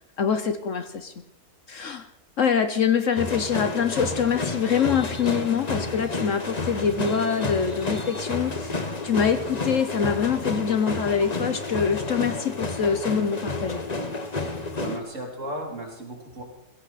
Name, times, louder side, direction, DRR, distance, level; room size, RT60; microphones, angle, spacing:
voice 1, 0.2-1.1 1.7-2.0 2.4-13.8, left 7 dB, 55° left, 9 dB, 1.2 m, -25 dB
sound 1, 3.2-15.0, left 3 dB, 30° left, 1.2 m, -30 dB
voice 2, 14.8-16.4, right 1 dB, 50° right, 0 dB, 3.7 m, -35 dB
20.5 x 16.0 x 4.2 m, 0.86 s
omnidirectional pair, 1.7 m